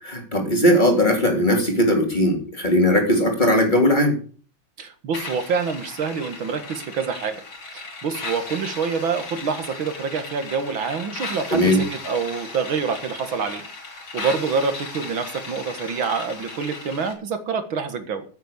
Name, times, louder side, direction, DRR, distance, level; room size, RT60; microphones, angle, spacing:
voice 1, 0.0-4.1 11.5-11.8, equal, 20° left, 2 dB, 3.6 m, -18 dB
voice 2, 4.8-7.3 7.7-13.6 14.1-18.2, right 5 dB, 75° right, 8 dB, 2.5 m, -26 dB
sound 1, 5.1-17.1, left 3 dB, 80° left, 4.3 m, -36 dB
15.5 x 8.3 x 6.8 m, 0.41 s
omnidirectional pair, 2.2 m